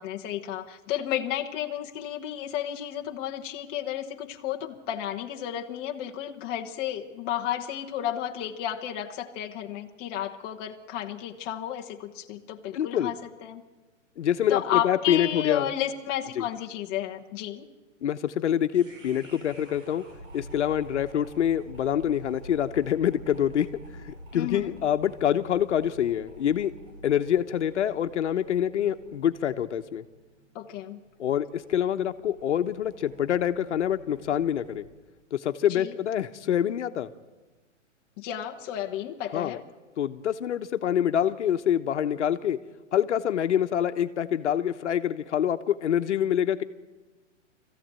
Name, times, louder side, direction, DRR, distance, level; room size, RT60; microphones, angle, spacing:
voice 1, 0.0-13.2 13.4-13.6 14.5-17.7 24.3-24.7 30.5-31.0 35.7-35.9 38.2-39.6, left 11 dB, 20° left, 2 dB, 1.0 m, -32 dB
voice 2, 12.7-13.1 14.2-15.7 16.4-16.5 18.0-20.0 20.3-26.7 27.0-30.0 31.2-34.9 35.3-37.1 39.3-39.6 40.0-42.6 42.9-46.6, left 10 dB, 65° left, 9 dB, 1.1 m, -26 dB
sound 1, 18.7-34.9, right 1 dB, 80° right, 6.9 m, -48 dB
22.0 x 15.0 x 9.0 m, 1.2 s
hypercardioid pair, 165°, 37 cm